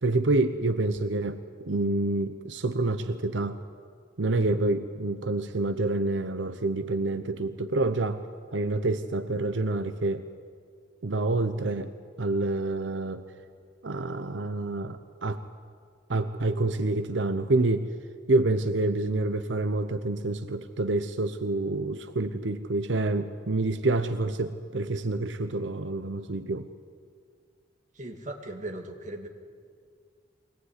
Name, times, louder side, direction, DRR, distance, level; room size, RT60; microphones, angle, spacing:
voice 1, 0.0-3.6 4.2-8.3 8.5-10.3 11.0-11.9 12.2-13.2 13.8-15.4 16.1-17.9 18.3-26.7, right 2 dB, 90° right, 9 dB, 0.9 m, -27 dB
voice 2, 27.9-29.3, right 1 dB, 45° right, 3 dB, 2.4 m, -38 dB
23.5 x 18.5 x 9.7 m, 2.1 s
head